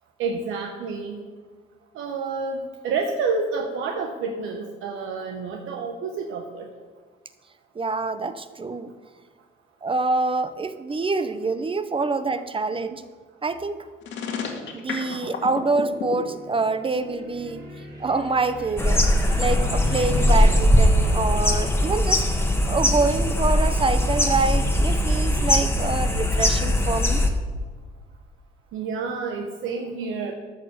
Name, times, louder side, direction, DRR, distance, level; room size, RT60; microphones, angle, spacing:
voice 1, 0.2-1.2 1.9-6.7 28.7-30.3, right 4 dB, 90° right, 2 dB, 0.9 m, -29 dB
voice 2, 7.8-8.9 9.8-13.0 13.4-13.9 14.7-17.6 18.0-19.0 19.4-22.3 22.7-27.2, right 3 dB, 25° right, 12 dB, 0.6 m, -26 dB
sound 1, 14.0-16.2, left 6 dB, 70° left, 1.9 m, -30 dB
sound 2, 15.5-20.5, left 2 dB, 45° right, 3.6 m, -36 dB
sound 3, 18.8-27.3, left 1 dB, 10° left, 1.3 m, -20 dB
13.5 x 4.7 x 6.7 m, 1.5 s
cardioid pair, 90°, 20 cm